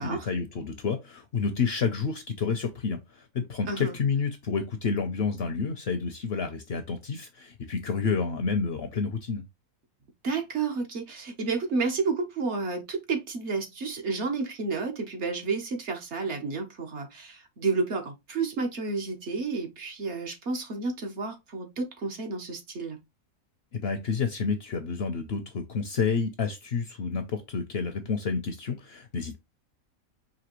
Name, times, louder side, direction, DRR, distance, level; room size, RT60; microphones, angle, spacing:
voice 1, 0.0-9.4 23.7-29.4, left 5 dB, 60° left, 0.7 m, -29 dB
voice 2, 10.2-23.0, right 4 dB, 55° right, 1.1 m, -31 dB
5.0 x 2.8 x 3.0 m
omnidirectional pair, 1.5 m